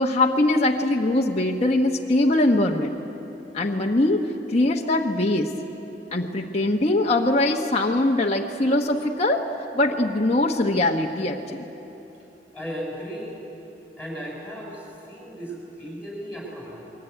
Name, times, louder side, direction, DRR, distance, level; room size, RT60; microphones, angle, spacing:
voice 1, 0.0-3.0 3.5-4.2 4.5-5.5 6.1-9.5 9.7-11.6, left 2 dB, 35° left, -1 dB, 1.2 m, -22 dB
voice 2, 12.5-13.4 14.0-16.8, equal, 5° right, -3 dB, 6.3 m, -35 dB
28.0 x 22.0 x 9.2 m, 3.0 s
head